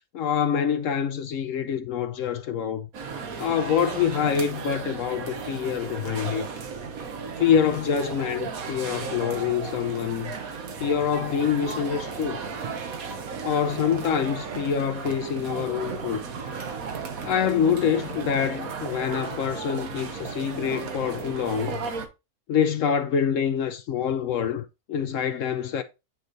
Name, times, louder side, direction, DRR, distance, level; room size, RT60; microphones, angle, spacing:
voice 1, 0.1-2.9 3.4-6.5 7.4-10.3 10.8-12.4 13.4-16.2 17.2-21.8 22.5-25.8, left 7 dB, 70° left, 0.8 m, -26 dB
sound 1, 2.9-22.1, right 5 dB, 65° right, 1.4 m, -35 dB
9.0 x 3.1 x 3.9 m
omnidirectional pair, 1.6 m